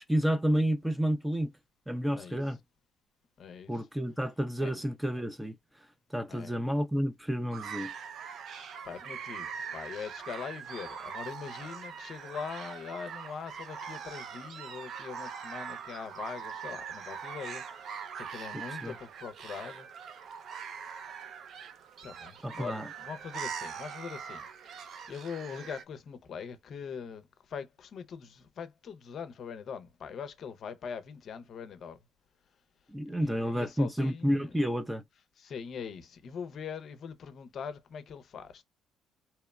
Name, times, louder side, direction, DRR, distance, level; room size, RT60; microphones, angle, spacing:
voice 1, 0.1-1.5 1.9-2.6 3.7-5.5 6.1-7.9 18.5-18.9 22.4-22.9 32.9-35.0, equal, 5° right, 0.4 m, -30 dB
voice 2, 3.4-3.9 4.6-4.8 6.3-6.5 8.8-19.9 22.0-32.0 33.1-34.5 35.4-38.6, left 6 dB, 55° left, 0.5 m, -42 dB
sound 1, 7.5-25.8, right 7 dB, 60° right, 0.5 m, -42 dB
2.8 x 2.0 x 2.2 m
cardioid pair, 90°, 0 cm